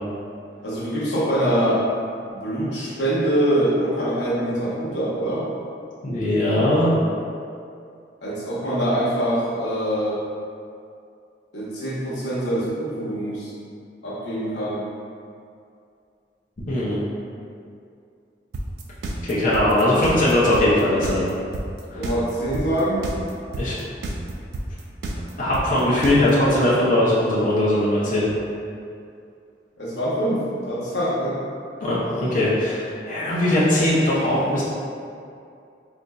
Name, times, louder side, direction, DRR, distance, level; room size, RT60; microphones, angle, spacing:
voice 1, 0.6-1.8 2.3-5.5 8.2-10.2 11.5-13.5 14.0-14.8 21.9-23.1 29.8-30.4 30.7-31.4, right 1 dB, 90° left, -8 dB, 0.9 m, -24 dB
voice 2, 6.0-6.9 16.7-17.0 19.2-21.2 23.6-23.7 25.4-28.2 31.8-34.6, left 1 dB, 50° left, -9 dB, 0.5 m, -20 dB
sound 1, 18.5-26.5, right 1 dB, 70° right, 0.3 m, -30 dB
3.9 x 2.5 x 2.2 m, 2.4 s
head